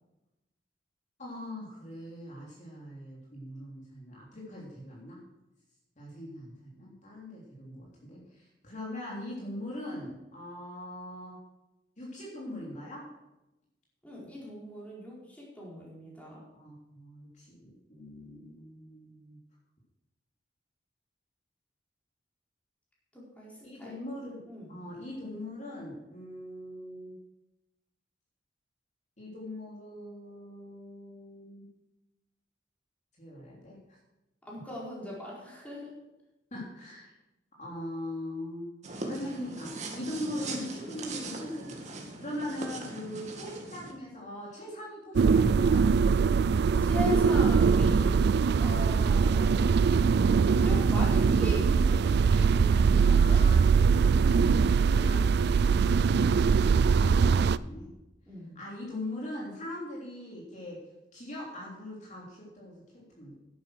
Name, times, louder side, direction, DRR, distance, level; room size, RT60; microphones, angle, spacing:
voice 1, 1.2-5.2 6.0-11.4 12.0-13.1 16.5-19.4 23.6-24.4 24.7-27.1 29.2-31.7 33.2-33.8 36.5-37.1 37.6-38.7 39.0-45.8 53.0-56.0 56.8-57.9 58.5-60.8 61.1-63.4, left 1 dB, 40° left, -4 dB, 3.3 m, -41 dB
voice 2, 14.0-16.4 23.1-24.8 34.4-35.9 46.8-50.0 50.6-53.4 53.7-54.0 54.9-55.5 58.3-58.5, left 1 dB, 10° left, -5 dB, 4.6 m, -40 dB
sound 1, 38.8-43.9, right 2 dB, 40° right, 2.0 m, -40 dB
sound 2, 45.1-57.6, right 5 dB, 60° right, 0.3 m, -22 dB
11.0 x 9.4 x 6.2 m, 0.96 s
head